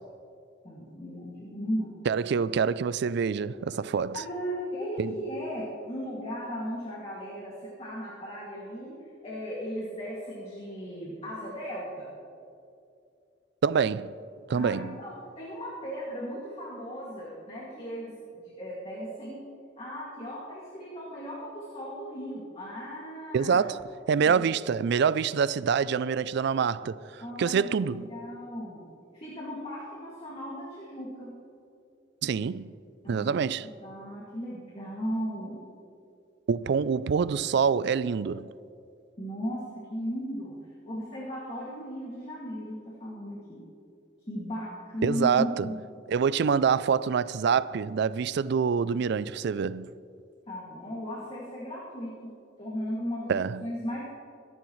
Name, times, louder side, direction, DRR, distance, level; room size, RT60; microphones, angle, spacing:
voice 1, 0.6-1.9 4.1-8.9 9.2-12.1 14.5-19.4 19.8-23.6 24.2-24.4 27.2-28.8 29.1-31.3 33.0-33.3 33.8-35.6 39.2-39.6 39.9-40.6 40.9-43.6 44.3-45.8 50.5-52.3 52.6-54.0, equal, 35° left, 2.3 m, -36 dB
voice 2, 2.1-4.2 5.0-5.1 13.6-14.1 14.5-15.0 23.3-28.1 32.2-32.7 33.1-33.7 36.5-38.5 45.0-45.7 46.1-49.9 53.3-53.6, right 6 dB, 65° right, 0.4 m, -26 dB
23.5 x 11.0 x 3.2 m
head